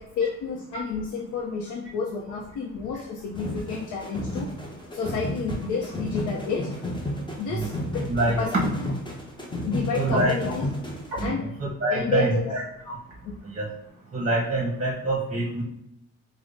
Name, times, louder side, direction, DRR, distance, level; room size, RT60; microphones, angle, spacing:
voice 1, 0.0-4.5 4.9-6.7 7.4-8.0 8.4-8.5 8.8-8.9 9.6-10.6 11.2-11.5 11.9-12.6 13.2-13.3, left 5 dB, 85° left, 0 dB, 0.5 m, -30 dB
sound 1, 3.3-11.2, left 1 dB, 15° left, 0.7 m, -32 dB
voice 2, 8.1-8.4 9.9-10.3 11.1-12.6 12.9-13.0 13.4-13.7 14.1-15.6, right 2 dB, 25° right, -2 dB, 0.8 m, -25 dB
4.8 x 2.0 x 2.5 m, 0.79 s
cardioid pair, 90°, 30 cm